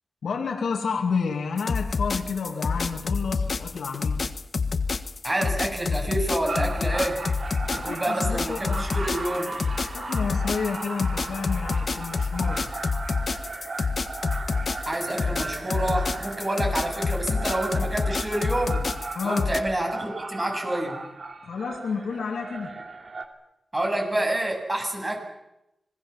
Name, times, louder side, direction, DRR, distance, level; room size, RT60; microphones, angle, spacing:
voice 1, 0.2-4.2 7.7-8.9 9.9-12.7 19.1-19.5 21.4-22.8, left 5 dB, 85° left, 2 dB, 2.5 m, -30 dB
sound 1, 1.6-19.6, left 4 dB, 60° left, 1.4 m, -27 dB
voice 2, 5.2-7.2 7.7-9.6 14.9-18.9 19.2-21.0 23.7-25.2, right 1 dB, 30° right, 2 dB, 7.8 m, -28 dB
sound 2, 6.4-23.2, right 3 dB, 55° right, 2.7 m, -36 dB
26.0 x 20.5 x 7.3 m, 0.87 s
cardioid pair, 65°, 0 cm